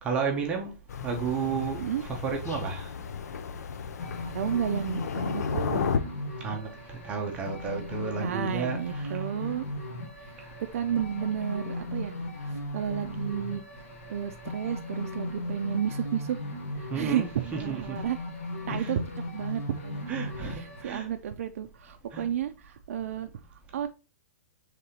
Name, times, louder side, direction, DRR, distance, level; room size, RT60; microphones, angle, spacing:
voice 1, 0.0-0.7 1.0-2.9 6.4-9.2 10.4-10.5 16.9-17.3 17.5-18.0 18.7-19.0 20.1-21.1 22.1-22.3, right 6 dB, 15° right, 0.6 m, -32 dB
Thunder, 0.9-6.0, left 6 dB, 90° left, 0.5 m, -33 dB
sound 1, 4.0-20.8, left 1 dB, 60° left, 1.1 m, -37 dB
voice 2, 4.3-5.9 8.2-9.7 10.2-12.1 12.4-13.6 14.1-16.4 16.8-18.2 18.7-19.0 19.3-20.1 20.4-23.3 23.7-23.9, right 9 dB, 60° right, 0.4 m, -32 dB
5.3 x 3.2 x 2.8 m
hypercardioid pair, 165°, 8 cm